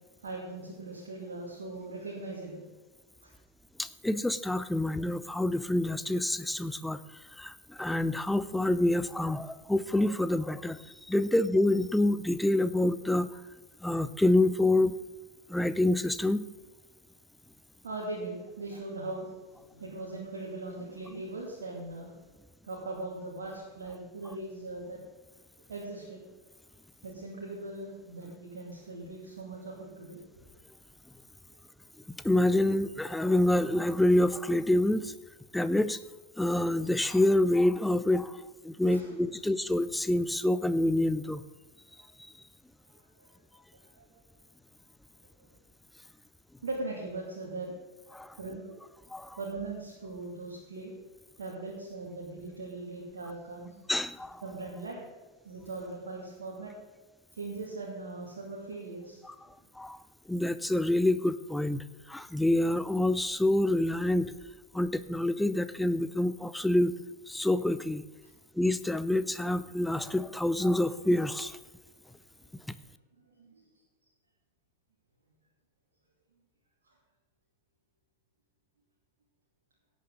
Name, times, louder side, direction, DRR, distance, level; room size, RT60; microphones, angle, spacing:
voice 1, 0.2-2.6 3.2-3.3 17.8-22.3 22.6-25.0 25.7-26.2 27.0-30.2 38.8-39.1 42.0-42.1 42.9-44.1 45.4-45.5 46.6-47.7 48.4-48.7 49.4-50.9 51.4-53.8 54.4-55.0 55.4-56.7 57.4-59.2 73.3-73.6 76.9-77.0, right 2 dB, 65° right, -3 dB, 2.4 m, -40 dB
voice 2, 3.8-7.0 7.4-10.8 11.1-13.3 13.8-14.9 15.5-16.5 32.2-35.1 35.5-36.0 36.4-38.4 38.6-41.4 48.1-48.4 49.1-49.4 53.9-54.4 59.3-59.4 59.8-60.0 60.3-64.3 64.7-66.9 67.3-68.0 68.6-71.6 72.7-72.8, left 1 dB, 5° left, 13 dB, 0.6 m, -27 dB
16.5 x 9.0 x 3.8 m, 1.2 s
figure-of-eight pair, 90°, 0 cm